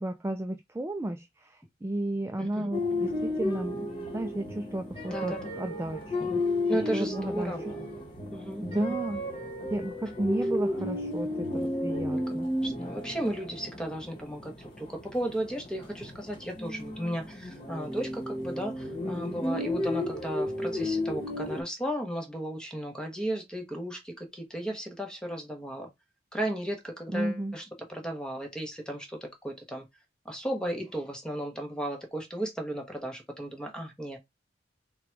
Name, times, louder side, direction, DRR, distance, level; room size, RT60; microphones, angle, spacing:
voice 1, 0.0-6.4 6.9-7.5 8.6-9.2 9.7-12.5 27.1-27.6, right 1 dB, 15° right, 0.3 m, -33 dB
voice 2, 2.4-2.7 5.1-5.4 6.7-7.8 8.3-8.9 12.6-25.9 26.3-29.8 30.2-34.2, right 1 dB, 5° left, 1.0 m, -35 dB
sound 1, 2.7-21.6, left 1 dB, 30° left, 1.2 m, -33 dB
3.8 x 2.3 x 4.4 m
head